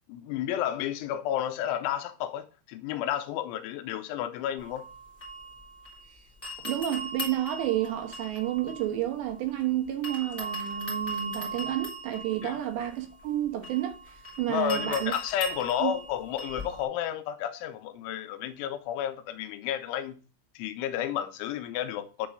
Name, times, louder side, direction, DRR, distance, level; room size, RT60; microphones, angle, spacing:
voice 1, 0.1-4.9 12.4-12.6 14.5-20.2 20.6-22.3, left 11 dB, 85° left, 3.2 m, -31 dB
sound 1, 4.6-6.1 6.4-9.6 10.0-16.8, right 1 dB, 20° left, 1.9 m, -39 dB
voice 2, 6.6-14.0 14.4-15.1 15.8-15.9, right 12 dB, 75° right, 3.1 m, -30 dB
10.5 x 4.0 x 6.3 m
omnidirectional pair, 5.5 m